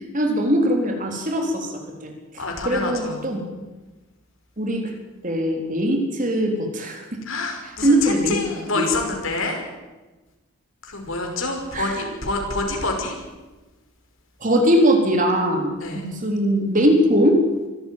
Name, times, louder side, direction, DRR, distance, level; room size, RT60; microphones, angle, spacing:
voice 1, 0.1-2.1 2.6-3.4 4.6-4.9 5.2-7.2 7.6-8.4 8.7-8.8 11.7-12.0 14.4-17.4, equal, 35° right, 3 dB, 4.0 m, -21 dB
voice 2, 2.4-3.4 7.3-9.6 10.8-13.1 15.8-16.1, left 3 dB, 70° left, 2 dB, 5.7 m, -27 dB
25.0 x 14.0 x 9.4 m, 1.1 s
head